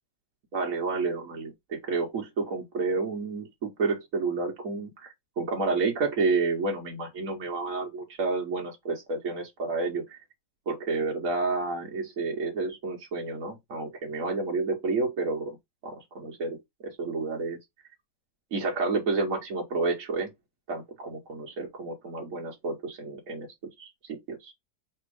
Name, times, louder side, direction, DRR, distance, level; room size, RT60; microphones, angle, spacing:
voice 1, 0.5-10.2 10.7-15.6 15.8-16.6 16.8-17.6 18.5-20.3 20.7-23.5 23.8-24.5, right 3 dB, 55° right, 1.2 m, -30 dB
3.4 x 3.0 x 4.7 m
omnidirectional pair, 1.9 m